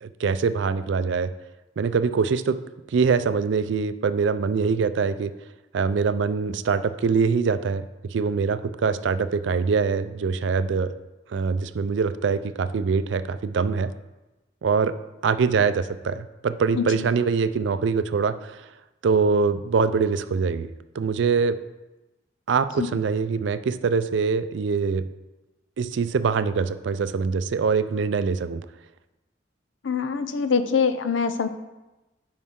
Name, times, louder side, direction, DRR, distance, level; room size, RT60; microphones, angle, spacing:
voice 1, 0.0-1.3 1.8-2.6 2.9-5.3 5.7-10.9 11.3-13.9 14.6-15.0 15.2-18.7 19.0-20.7 20.9-21.6 22.5-25.0 25.8-28.6, right 5 dB, 75° right, 13 dB, 0.4 m, -23 dB
voice 2, 29.8-31.5, left 5 dB, 85° left, 10 dB, 0.6 m, -24 dB
9.4 x 5.5 x 3.7 m, 1.1 s
head